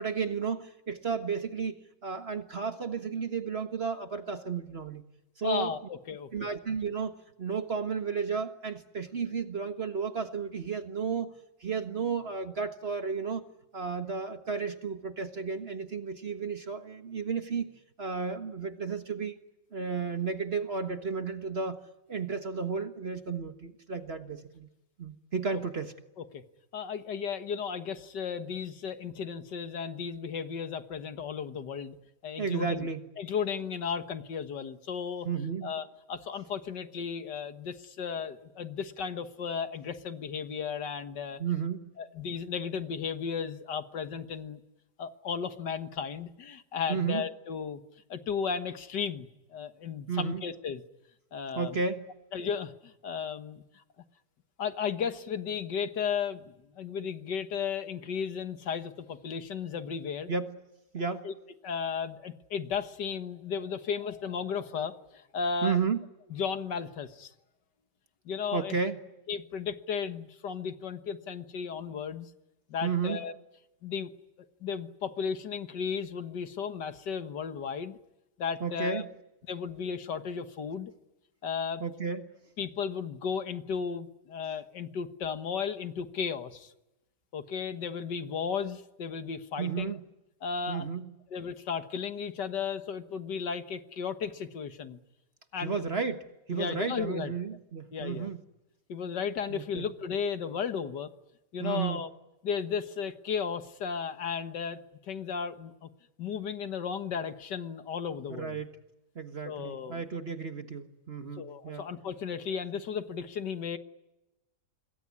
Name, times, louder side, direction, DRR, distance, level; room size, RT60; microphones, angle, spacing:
voice 1, 0.0-5.0 5.4-5.8 6.3-11.3 11.6-13.5 13.7-17.7 18.0-19.4 19.7-21.8 22.1-24.7 25.0-25.9 32.4-33.0 35.2-35.7 41.4-41.9 46.9-47.2 50.1-50.4 51.5-52.1 60.3-60.6 60.9-61.3 65.6-66.0 68.5-69.0 72.8-73.2 78.6-79.1 81.8-82.2 89.6-90.0 90.7-91.1 95.6-98.4 99.5-99.9 101.6-102.0 108.3-108.7 109.1-111.9, right 5 dB, 35° right, 8 dB, 1.5 m, -33 dB
voice 2, 5.4-6.5 26.3-26.4 26.7-32.0 32.2-32.9 33.2-35.3 35.6-41.4 42.0-44.6 45.0-47.8 48.1-50.8 51.3-51.8 52.3-53.6 54.6-60.3 61.2-61.3 61.6-65.8 66.3-67.3 68.3-68.8 69.3-72.3 72.7-73.3 73.8-74.1 74.6-78.0 78.4-79.0 79.5-80.9 81.4-81.8 82.6-86.7 87.3-90.0 90.4-90.9 91.3-95.0 95.5-95.9 96.5-97.3 97.9-98.3 98.9-101.1 101.5-102.1 102.4-104.8 105.1-105.9 106.2-108.6 109.4-110.0 111.4-113.8, left 6 dB, 70° left, 10 dB, 2.0 m, -34 dB
27.0 x 21.5 x 9.7 m, 0.94 s
omnidirectional pair, 1.9 m